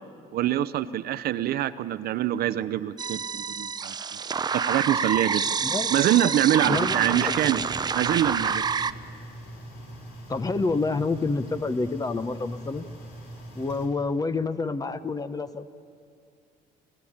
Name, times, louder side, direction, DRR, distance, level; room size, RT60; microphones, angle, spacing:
voice 1, 0.3-3.9 4.5-5.5 5.9-7.6 7.9-8.7, right 12 dB, 65° right, 14 dB, 0.7 m, -25 dB
sound 1, 3.0-8.9, right 6 dB, 25° right, 0.5 m, -28 dB
voice 2, 5.6-5.9 6.7-7.3 10.3-12.9 13.5-15.7, left 3 dB, 20° left, 12 dB, 0.8 m, -28 dB
sound 2, 6.5-13.9, right 1 dB, 80° left, 4.0 m, -43 dB
30.0 x 13.0 x 8.7 m, 2.4 s
cardioid pair, 110°, 17 cm